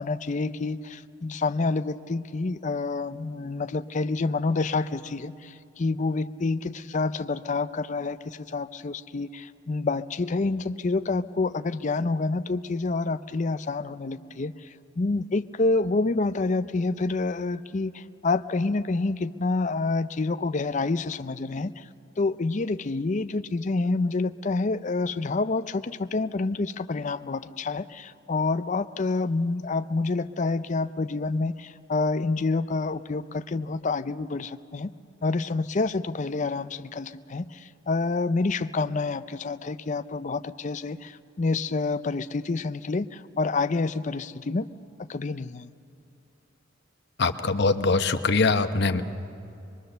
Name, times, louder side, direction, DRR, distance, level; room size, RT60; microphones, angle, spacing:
voice 1, 0.0-21.9 22.2-34.9 35.2-44.7 45.0-45.7, left 3 dB, 40° left, 12 dB, 0.5 m, -28 dB
voice 2, 47.2-49.0, left 3 dB, 60° left, 9 dB, 0.9 m, -23 dB
23.5 x 22.5 x 6.8 m, 2.7 s
head